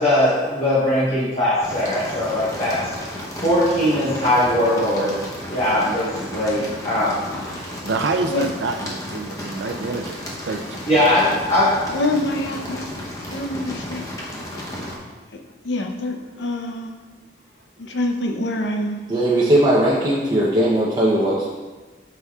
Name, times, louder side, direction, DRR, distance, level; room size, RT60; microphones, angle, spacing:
voice 1, 0.0-2.8 3.4-5.1 5.5-7.1 10.9-11.7, left 1 dB, 35° left, -10 dB, 1.2 m, -20 dB
sound 1, 1.6-15.0, left 1 dB, 20° left, 0.8 m, -33 dB
voice 2, 2.1-2.6 3.1-3.4 7.8-10.8, right 3 dB, 80° right, 5 dB, 0.5 m, -28 dB
voice 3, 3.9-4.3 7.3-7.5 8.3-8.5 11.9-12.9 13.3-14.0 14.5-14.6 15.3-16.9 17.8-19.0, left 1 dB, 75° left, 4 dB, 0.7 m, -26 dB
voice 4, 19.1-21.5, right 1 dB, 20° right, -7 dB, 0.7 m, -18 dB
8.0 x 5.7 x 2.4 m, 1.3 s
head